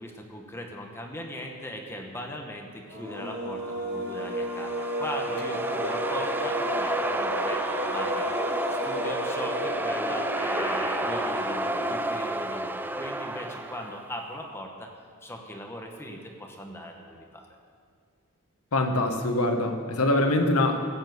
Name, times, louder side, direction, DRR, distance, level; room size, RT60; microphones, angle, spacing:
voice 1, 0.0-14.9 15.2-17.5, equal, 10° left, 1 dB, 1.1 m, -39 dB
sound 1, 2.8-12.2, right 1 dB, 80° right, 4.1 m, -32 dB
sound 2, 4.3-14.1, right 1 dB, 10° right, 0.4 m, -31 dB
voice 2, 18.7-20.8, left 2 dB, 75° left, 5 dB, 1.2 m, -24 dB
15.0 x 7.2 x 7.8 m, 2.2 s
head